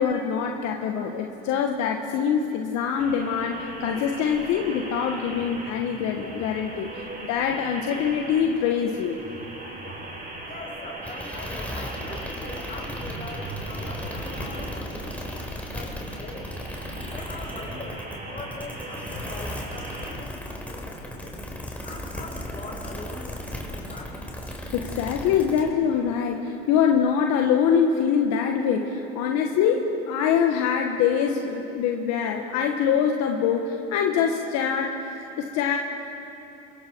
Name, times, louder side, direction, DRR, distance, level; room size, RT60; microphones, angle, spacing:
voice 1, 0.0-9.2 24.7-35.8, left 7 dB, 65° left, 2 dB, 1.6 m, -24 dB
sound 1, 3.0-20.1, right 2 dB, 30° right, 6.6 m, -39 dB
voice 2, 9.6-10.1 10.4-15.1 15.7-16.5 17.1-18.0 18.3-21.3 21.8-24.2, left 2 dB, 25° left, -1 dB, 6.5 m, -42 dB
sound 2, 11.0-25.7, left 1 dB, 5° left, 4.4 m, -36 dB
27.5 x 22.5 x 4.7 m, 2.9 s
hypercardioid pair, 85°, 29 cm